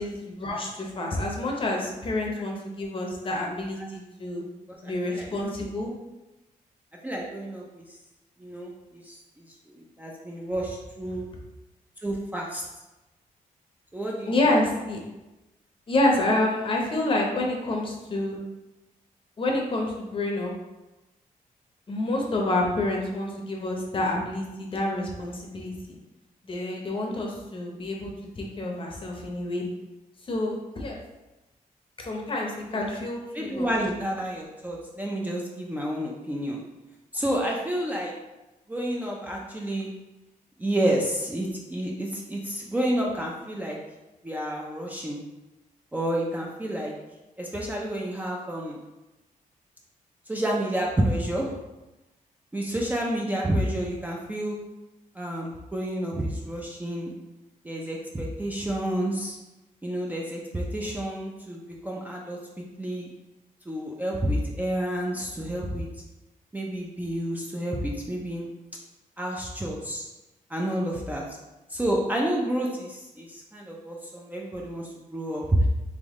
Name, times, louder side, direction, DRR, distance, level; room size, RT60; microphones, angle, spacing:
voice 1, 0.0-4.4 4.8-5.9 14.3-15.0 15.9-18.4 19.4-20.5 21.9-26.0 26.4-28.1 28.4-29.6 30.2-31.0 32.0-33.7, left 2 dB, 35° left, 0 dB, 0.7 m, -28 dB
voice 2, 4.7-5.7 7.0-7.8 8.4-11.3 12.0-12.6 13.9-14.3 33.3-36.6 37.1-38.1 38.7-39.9 40.6-43.8 44.2-45.2 45.9-46.9 47.4-48.8 50.3-51.5 52.5-54.6 55.2-57.1 57.6-59.4 59.8-62.4 62.8-63.1 63.7-65.9 66.5-68.5 69.2-70.0 70.5-71.2 71.7-75.6, right 1 dB, 10° right, -2 dB, 0.4 m, -30 dB
3.5 x 3.0 x 3.6 m, 1.0 s
wide cardioid pair, 160°, 15 cm